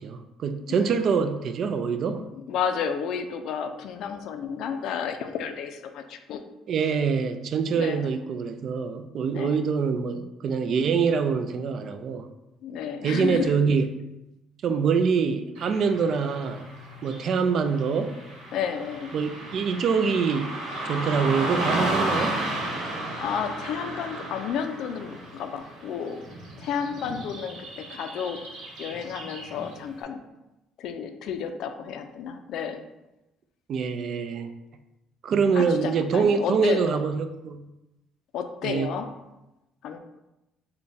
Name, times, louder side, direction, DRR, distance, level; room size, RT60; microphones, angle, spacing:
voice 1, 0.0-2.3 6.7-12.3 13.0-13.9 14.6-16.7 17.0-18.1 19.1-20.6 20.8-22.4 33.7-34.5 35.2-37.6 38.6-38.9, right 5 dB, 55° right, 8 dB, 0.3 m, -25 dB
voice 2, 0.7-1.2 2.4-6.4 7.8-8.1 9.3-9.6 12.6-13.6 18.5-19.2 23.2-26.2 26.6-28.4 28.8-30.2 30.8-32.8 35.6-36.8 38.3-39.1 39.8-40.0, left 7 dB, 70° left, 8 dB, 0.4 m, -31 dB
Car passing by / Traffic noise roadway noise, 15.5-29.8, right 1 dB, 75° right, 1.0 m, -33 dB
3.4 x 2.2 x 4.0 m, 0.95 s
cardioid pair, 110°, 0 cm